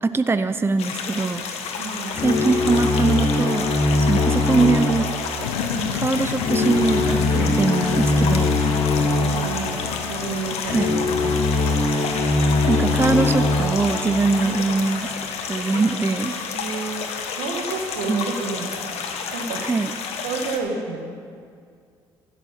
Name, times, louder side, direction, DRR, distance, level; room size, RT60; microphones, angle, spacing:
voice 1, 0.0-1.5 2.2-3.7 4.1-5.1 5.9-8.6 10.6-10.9 12.7-15.1 15.5-16.3 18.1-18.3 19.6-19.9, right 3 dB, 20° right, 11 dB, 0.6 m, -22 dB
sound 1, 0.8-20.6, left 5 dB, 65° left, 1.5 m, -31 dB
voice 2, 1.7-2.2 5.6-6.0 8.3-8.6 9.0-9.8 10.1-11.3 14.3-14.7 16.4-19.0 19.3-19.6 20.2-21.1, right 4 dB, 80° right, 2 dB, 1.8 m, -31 dB
sound 2, 2.1-15.2, left 3 dB, 50° left, 1.9 m, -22 dB
sound 3, 5.4-15.5, left 12 dB, 90° left, 0.4 m, -34 dB
15.0 x 7.1 x 7.4 m, 2.2 s
hypercardioid pair, 55°, 11 cm